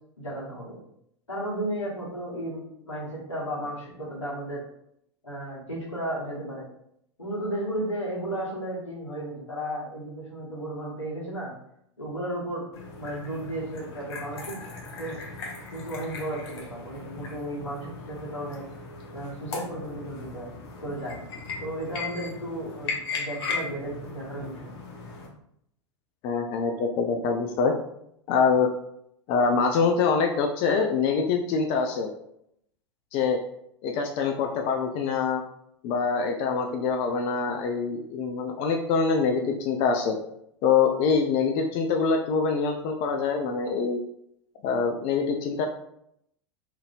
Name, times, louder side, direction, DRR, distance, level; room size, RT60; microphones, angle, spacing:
voice 1, 0.2-0.8 1.3-4.6 5.2-6.6 7.2-11.5 12.0-12.7 13.0-14.6 15.0-15.2 15.7-18.6 19.1-20.5 20.8-21.2 21.6-24.7, right 1 dB, 80° left, -5 dB, 1.2 m, -34 dB
sound 1, 12.7-25.3, left 4 dB, 55° left, 0.7 m, -38 dB
voice 2, 26.2-27.7 28.3-28.7 29.3-32.1 33.1-33.4 33.8-35.4 35.8-40.2 40.6-44.0 44.6-45.7, left 5 dB, 35° left, 3 dB, 0.3 m, -24 dB
2.9 x 2.6 x 2.4 m, 0.74 s
figure-of-eight pair, 90°, 15 cm